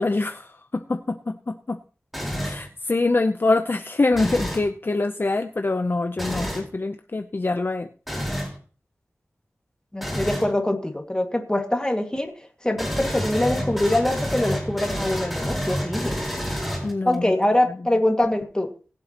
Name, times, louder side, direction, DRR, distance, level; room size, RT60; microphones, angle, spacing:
voice 1, 0.0-1.8 2.4-7.9 16.8-17.4 17.7-17.8, left 3 dB, 45° left, 7 dB, 0.7 m, -24 dB
sound 1, 2.1-2.7 4.1-4.7 6.2-6.7 8.1-8.6 10.0-10.5 12.8-17.1, equal, 5° right, 4.4 m, -29 dB
voice 2, 9.9-12.3 12.6-16.1 17.1-18.7, left 1 dB, 15° left, 4 dB, 2.0 m, -23 dB
21.0 x 7.7 x 3.0 m, 0.37 s
wide cardioid pair, 75°, 5 cm